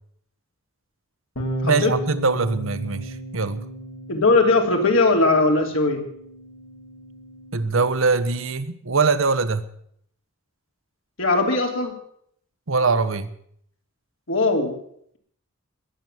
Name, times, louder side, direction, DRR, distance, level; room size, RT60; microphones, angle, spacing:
Bass guitar, 1.4-7.6, right 1 dB, 90° left, 3.9 m, -34 dB
voice 1, 1.6-3.6 7.5-9.7 12.7-13.3, right 4 dB, 75° right, 12 dB, 1.1 m, -22 dB
voice 2, 4.1-6.0 11.2-11.9 14.3-14.7, left 3 dB, 70° left, 2 dB, 3.2 m, -19 dB
21.5 x 7.7 x 7.9 m, 0.67 s
head